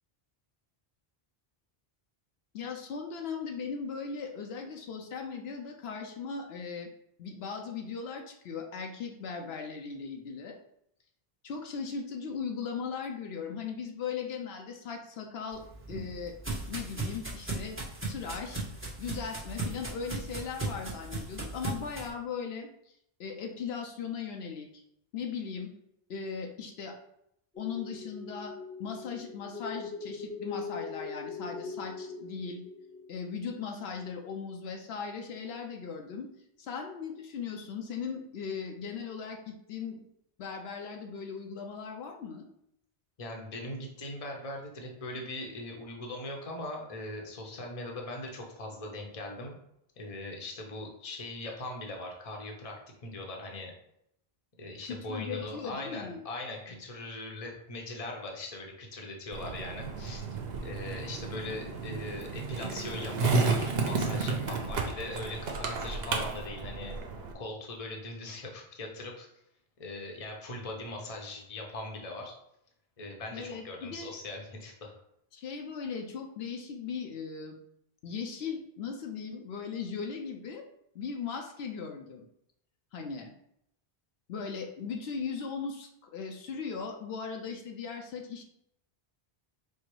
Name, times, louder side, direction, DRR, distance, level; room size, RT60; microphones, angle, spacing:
voice 1, 2.5-6.9 7.2-10.6 11.4-15.6 15.9-16.3 16.7-17.8 18.1-18.6 19.0-22.7 23.2-24.8 25.1-25.7 26.1-27.0 27.6-28.5 28.8-32.6 33.1-36.3 36.6-40.0 40.4-42.5 54.8-56.2 73.3-74.1 75.3-77.6 78.0-80.6 80.9-82.2 82.9-83.3 84.3-88.4, left 6 dB, 80° left, 3 dB, 0.9 m, -38 dB
sound 1, 15.5-22.1, right 2 dB, 15° right, 1.0 m, -37 dB
sound 2, 27.5-34.1, left 4 dB, 5° left, 0.7 m, -41 dB
voice 2, 43.2-49.6 50.0-53.7 54.6-60.2 60.6-67.0 67.3-69.3 69.8-72.3 73.0-74.9, left 2 dB, 40° left, 1 dB, 0.8 m, -40 dB
Skateboard, 59.3-67.3, right 4 dB, 80° right, 0.9 m, -32 dB
4.6 x 2.0 x 4.6 m, 0.74 s
omnidirectional pair, 1.0 m